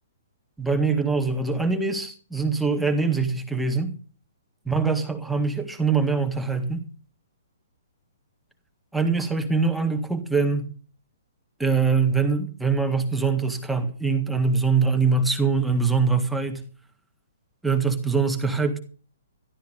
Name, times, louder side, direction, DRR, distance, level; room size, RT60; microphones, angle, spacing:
voice 1, 0.6-4.0 4.6-6.8 8.9-10.7 11.6-16.6 17.6-18.8, right 4 dB, 5° right, 1.7 m, -23 dB
13.5 x 12.0 x 5.2 m
figure-of-eight pair, 120°, 0 cm